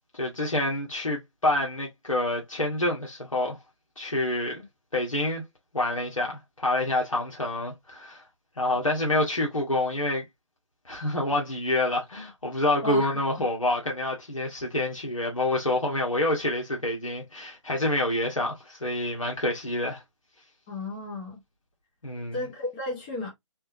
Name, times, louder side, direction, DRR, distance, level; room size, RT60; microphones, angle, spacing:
voice 1, 0.1-3.6 4.0-4.6 4.9-5.4 5.7-8.2 8.6-10.2 10.8-20.0 22.0-22.4, left 1 dB, 85° left, 1.4 m, -27 dB
voice 2, 12.8-13.2 20.7-21.4 22.3-23.3, left 2 dB, 15° left, 0.8 m, -33 dB
3.6 x 2.7 x 2.8 m
figure-of-eight pair, 145°, 17 cm